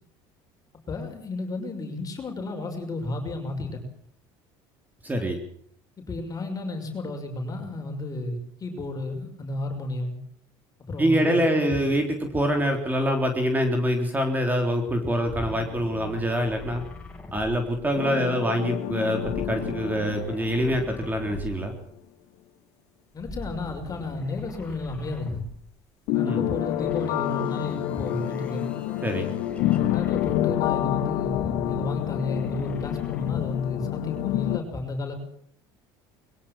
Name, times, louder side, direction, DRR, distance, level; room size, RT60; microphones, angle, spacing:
voice 1, 0.9-3.8 6.0-10.2 10.8-11.8 23.1-25.4 26.1-28.7 29.6-35.1, left 2 dB, 30° left, 4 dB, 6.1 m, -32 dB
voice 2, 5.0-5.4 11.0-16.8 17.3-21.7 26.2-26.4 29.0-29.3, equal, 15° right, 4 dB, 3.8 m, -25 dB
sound 1, 15.2-18.3 19.2-21.9 23.2-25.8 26.7-30.7 31.1-33.6, left 2 dB, 10° left, 5.8 m, -42 dB
sound 2, 17.9-21.3 21.6-21.7 26.1-34.6, left 14 dB, 70° left, 1.9 m, -28 dB
22.5 x 17.0 x 7.5 m, 0.64 s
supercardioid pair, 100°, 11 cm